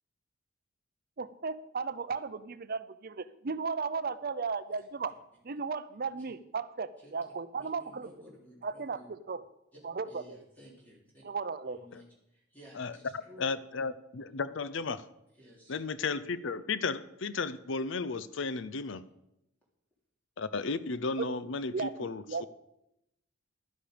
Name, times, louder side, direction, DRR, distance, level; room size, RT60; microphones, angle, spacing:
voice 1, 1.2-5.1 5.4-8.1 8.6-9.0 9.3-9.4 9.8-10.4 11.2-11.8 21.2-21.3 21.7-21.9 22.3-22.4, right 4 dB, 50° right, 14 dB, 0.6 m, -35 dB
voice 2, 7.5-9.1 9.7-9.8 10.1-11.2 11.6-13.4 15.4-15.8, equal, 10° left, -5 dB, 3.2 m, -55 dB
voice 3, 13.4-15.0 15.7-19.0 20.4-22.5, left 4 dB, 65° left, 15 dB, 0.6 m, -34 dB
12.0 x 10.5 x 5.1 m, 0.84 s
head